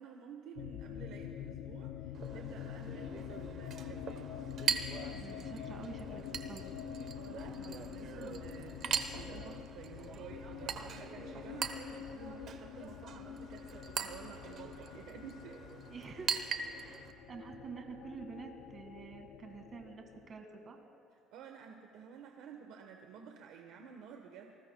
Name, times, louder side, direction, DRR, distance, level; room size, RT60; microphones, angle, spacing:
voice 1, 0.0-4.2 7.1-15.7 17.1-17.2 21.3-24.6, right 7 dB, 75° right, 3 dB, 1.1 m, -52 dB
sound 1, 0.6-20.4, left 9 dB, 70° left, 0.6 m, -46 dB
Chink clink, 2.1-17.1, right 7 dB, 45° right, 0.9 m, -41 dB
voice 2, 5.1-6.7 15.9-16.4 16.8-20.8, right 4 dB, 30° right, 4 dB, 1.8 m, -48 dB
28.5 x 20.0 x 2.2 m, 2.6 s
cardioid pair, 145°, 0 cm